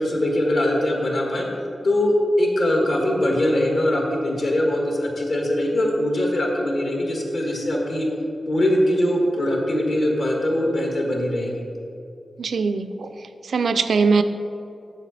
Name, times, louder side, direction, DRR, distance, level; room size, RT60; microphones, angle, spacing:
voice 1, 0.0-1.5 1.8-8.1 8.5-11.6, left 1 dB, 55° left, 0 dB, 1.3 m, -22 dB
voice 2, 12.4-13.1 13.4-14.2, right 4 dB, 70° right, 9 dB, 0.4 m, -21 dB
7.4 x 7.3 x 4.0 m, 2.7 s
wide cardioid pair, 165°, 0 cm